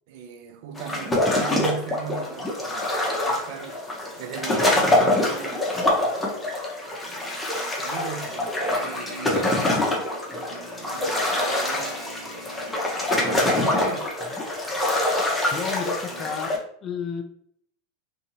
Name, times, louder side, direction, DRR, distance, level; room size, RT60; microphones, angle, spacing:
voice 1, 0.1-3.8 4.2-6.5 7.0-8.3 8.7-9.8 10.3-12.7 13.2-14.1 16.1-16.4, right 7 dB, 65° right, 0.4 m, -39 dB
sound 1, 0.8-16.6, left 1 dB, 10° left, 0.8 m, -25 dB
sound 2, 8.2-9.7 10.4-13.6, equal, 15° right, 1.0 m, -41 dB
voice 2, 15.5-17.2, left 6 dB, 35° left, 0.4 m, -32 dB
2.7 x 2.6 x 2.8 m
hypercardioid pair, 100°, 0 cm